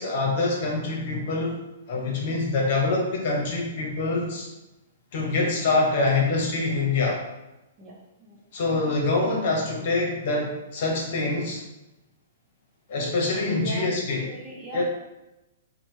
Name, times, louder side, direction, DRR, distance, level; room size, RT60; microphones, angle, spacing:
voice 1, 0.0-1.6 1.9-4.5 5.1-7.2 8.5-11.6 12.9-14.2 14.7-14.8, left 3 dB, 55° left, -2 dB, 0.9 m, -25 dB
voice 2, 7.8-8.4 13.6-13.9 14.3-14.8, right 2 dB, 30° right, -3 dB, 0.8 m, -39 dB
2.9 x 2.2 x 3.2 m, 0.96 s
hypercardioid pair, 130°, 0 cm